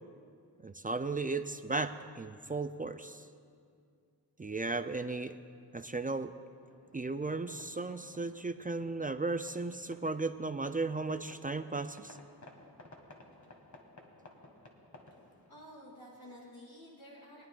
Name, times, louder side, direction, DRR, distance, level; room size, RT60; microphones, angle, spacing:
voice 1, 0.6-3.3 4.4-5.4 5.7-6.3 6.9-12.2, right 3 dB, 20° right, 9 dB, 0.5 m, -35 dB
sound 1, 6.6-15.7, left 2 dB, 45° left, 2.0 m, -57 dB
voice 2, 15.5-17.5, equal, 60° left, -6 dB, 2.8 m, -52 dB
23.5 x 9.2 x 2.5 m, 2.3 s
cardioid pair, 45°, 41 cm